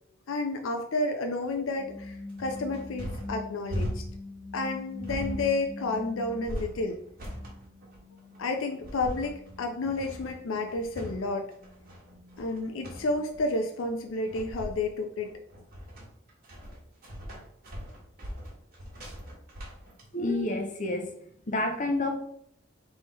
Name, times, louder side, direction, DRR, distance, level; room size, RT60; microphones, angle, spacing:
voice 1, 0.3-4.0 4.5-7.0 8.4-11.4 12.4-15.3, left 2 dB, 80° left, 4 dB, 0.5 m, -31 dB
sound 1, 1.4-20.0, equal, 50° right, 1.5 m, -40 dB
sound 2, 1.6-6.8 7.2-13.4, left 2 dB, 20° left, 1.5 m, -44 dB
voice 2, 20.1-21.1 21.5-22.1, left 2 dB, 40° left, 4 dB, 0.8 m, -28 dB
3.5 x 3.4 x 4.1 m, 0.69 s
head